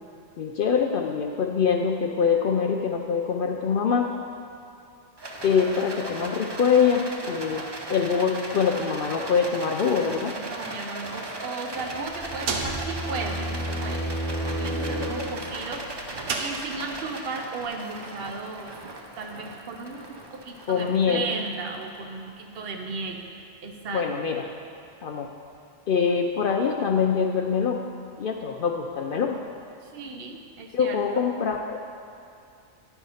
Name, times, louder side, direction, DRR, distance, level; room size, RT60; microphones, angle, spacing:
voice 1, 0.4-4.1 5.4-7.6 7.9-10.3 20.7-21.3 23.9-24.5 25.0-25.3 25.9-27.8 28.2-29.4 30.7-31.8, left 6 dB, 60° left, 2 dB, 0.6 m, -24 dB
Rattle, 5.2-22.5, right 2 dB, 30° right, 0.5 m, -37 dB
voice 2, 10.2-18.7 19.2-24.1 29.8-31.0, right 3 dB, 55° right, 3 dB, 0.9 m, -36 dB
sound 1, 11.7-15.7, equal, ahead, 2.0 m, -32 dB
sound 2, 12.0-17.1, right 4 dB, 85° right, 1.1 m, -36 dB
10.0 x 4.6 x 5.5 m, 2.6 s
omnidirectional pair, 1.3 m